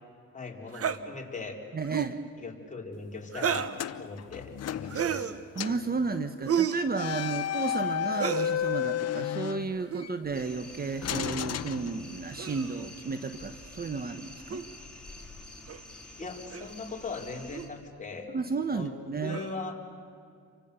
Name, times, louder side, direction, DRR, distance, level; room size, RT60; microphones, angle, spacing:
voice 1, 0.3-1.6 2.4-5.4 16.2-18.3 18.7-18.9 19.2-19.8, left 3 dB, 25° left, 0 dB, 4.0 m, -40 dB
sound 1, 0.7-1.0 1.8-2.2 3.3-3.8 4.9-5.4 6.5-6.9 8.1-8.5 9.8-10.1 11.2-11.4 12.4-12.8 14.5-14.6 15.7-15.8 16.5-16.7 17.5-17.7 19.3-19.6, right 8 dB, 50° right, 1.2 m, -31 dB
voice 2, 1.7-2.2 5.5-14.6 18.3-19.4, right 4 dB, 30° right, 10 dB, 1.1 m, -33 dB
sound 2, 3.5-5.3 5.6-5.9 6.9-10.1 11.0-12.4, left 10 dB, 55° left, 0.9 m, -33 dB
sound 3, 10.3-17.7, left 2 dB, 5° left, 4.4 m, -48 dB
29.0 x 24.5 x 6.9 m, 2.4 s
cardioid pair, 90°, 30 cm